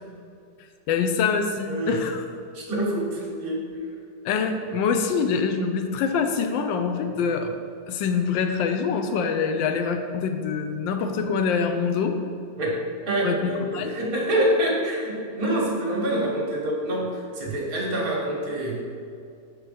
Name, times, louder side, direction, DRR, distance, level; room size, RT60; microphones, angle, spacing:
voice 1, 0.9-2.1 4.2-7.5 7.9-12.2 13.2-13.9, left 5 dB, 80° left, 6 dB, 1.3 m, -25 dB
voice 2, 1.7-2.0 2.5-3.7 7.1-7.2 12.6-18.8, right 1 dB, 50° right, -3 dB, 1.7 m, -26 dB
6.2 x 4.5 x 5.1 m, 2.4 s
omnidirectional pair, 2.1 m